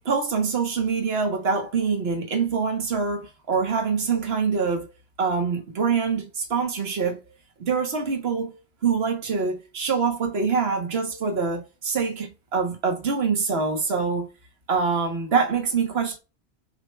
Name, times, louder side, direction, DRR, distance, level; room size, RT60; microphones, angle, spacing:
voice 1, 0.0-4.9 5.2-7.2 7.6-14.3 14.7-16.2, right 5 dB, 70° right, 1.5 m, -25 dB
7.3 x 3.4 x 4.4 m
omnidirectional pair, 1.1 m